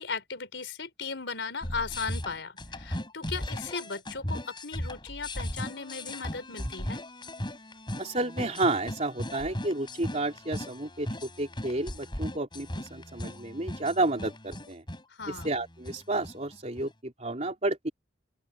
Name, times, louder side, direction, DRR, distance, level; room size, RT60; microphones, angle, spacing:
voice 1, 0.0-7.0 15.2-15.5, left 4 dB, 75° left, 4.2 m, -37 dB
sound 1, 1.6-16.9, left 1 dB, 25° left, 5.8 m, -37 dB
voice 2, 8.0-14.8 15.3-17.9, right 2 dB, 40° right, 3.8 m, -31 dB
open air
head